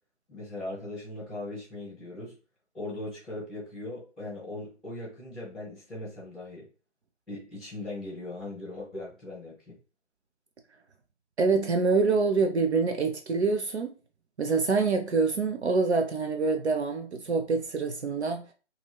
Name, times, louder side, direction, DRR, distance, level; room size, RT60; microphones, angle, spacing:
voice 1, 0.3-2.3 2.7-6.6 7.3-9.8, left 2 dB, ahead, 0.4 m, -39 dB
voice 2, 11.4-13.9 14.4-18.5, right 4 dB, 70° right, 0.6 m, -26 dB
2.9 x 2.7 x 2.3 m
figure-of-eight pair, 155°, 35 cm